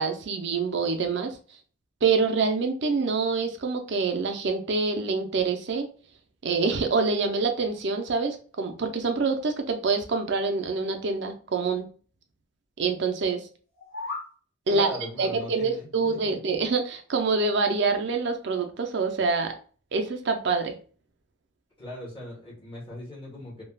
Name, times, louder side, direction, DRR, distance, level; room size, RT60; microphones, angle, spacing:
voice 1, 0.0-1.4 2.0-5.9 6.4-11.8 12.8-13.4 14.7-14.9 15.2-19.5 19.9-20.7, right 4 dB, 60° right, 6 dB, 0.5 m, -26 dB
sound 1, 13.6-14.3, left 3 dB, 85° left, 1.4 m, -36 dB
voice 2, 14.7-16.4 21.8-23.6, left 1 dB, 25° left, -6 dB, 1.2 m, -39 dB
3.2 x 2.3 x 2.3 m, 0.40 s
head